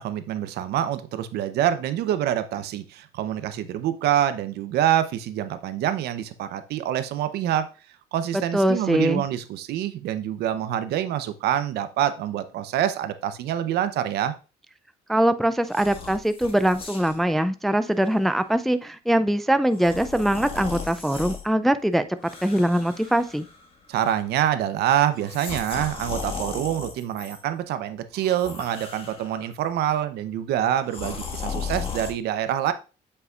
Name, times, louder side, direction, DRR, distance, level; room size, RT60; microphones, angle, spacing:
voice 1, 0.0-7.7 8.1-14.3 23.9-32.7, right 11 dB, 75° right, 11 dB, 0.7 m, -26 dB
voice 2, 8.5-9.2 15.1-22.0 22.4-23.5, right 1 dB, ahead, 11 dB, 0.3 m, -22 dB
sound 1, 15.7-17.2 17.9-18.1 19.7-21.4 22.2-23.7 23.9-24.4 25.2-27.4 28.1-29.5 30.9-32.1, left 5 dB, 35° left, 1.7 m, -36 dB
8.1 x 5.6 x 2.4 m, 0.32 s
cardioid pair, 110°, 17 cm